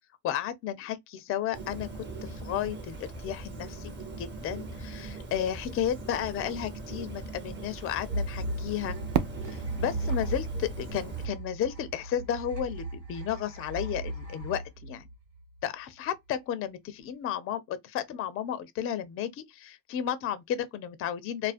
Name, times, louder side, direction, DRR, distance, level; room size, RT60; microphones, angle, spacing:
voice 1, 0.2-1.9 2.2-9.0 9.5-15.1 15.6-21.5, left 10 dB, 30° left, 0.4 m, -33 dB
Bird, 1.5-11.2, right 2 dB, 25° right, 0.8 m, -41 dB
sound 1, 8.1-15.6, right 2 dB, 90° right, 1.4 m, -36 dB
Fireworks, 9.1-12.0, right 9 dB, 55° right, 0.5 m, -35 dB
2.4 x 2.1 x 2.4 m
hypercardioid pair, 80°, 46 cm